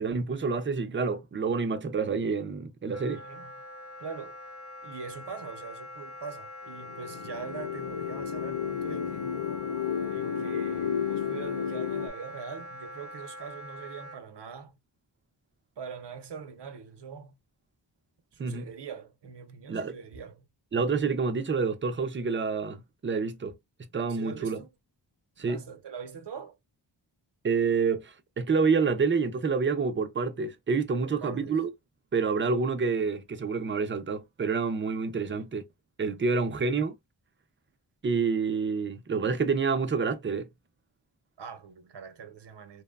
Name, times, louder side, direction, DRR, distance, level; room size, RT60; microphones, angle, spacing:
voice 1, 0.0-3.2 18.4-18.7 19.7-19.9 20.7-23.6 23.9-24.6 25.4-25.6 27.4-31.7 32.1-35.6 36.0-36.9 38.0-40.5, right 5 dB, 25° right, 0.4 m, -28 dB
Wind instrument woodwind instrument, 2.9-14.2, left 1 dB, 30° left, 0.8 m, -44 dB
voice 2, 3.1-3.5 4.0-4.4 4.8-9.4 10.1-14.8 15.8-17.4 18.3-20.5 24.1-24.7 25.4-26.6 31.0-31.6 35.3-35.5 41.4-42.8, right 6 dB, 65° right, 0.7 m, -43 dB
sound 1, 6.8-12.1, left 7 dB, 55° left, 0.5 m, -32 dB
2.9 x 2.1 x 2.2 m
wide cardioid pair, 90°, 46 cm